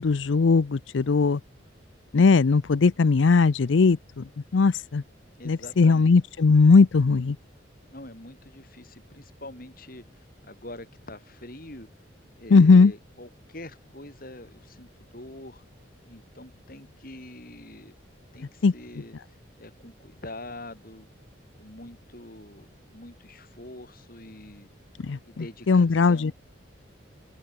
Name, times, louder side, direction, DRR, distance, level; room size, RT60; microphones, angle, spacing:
voice 1, 0.0-1.4 2.1-4.2 4.5-5.0 5.5-7.4 12.5-12.9 18.6-18.7 25.0-26.3, left 4 dB, 75° left, 0.5 m, -19 dB
voice 2, 5.4-6.2 7.9-11.9 12.4-15.6 16.0-17.9 18.3-21.1 21.6-24.7 25.2-26.3, left 1 dB, 50° left, 5.7 m, -45 dB
open air
head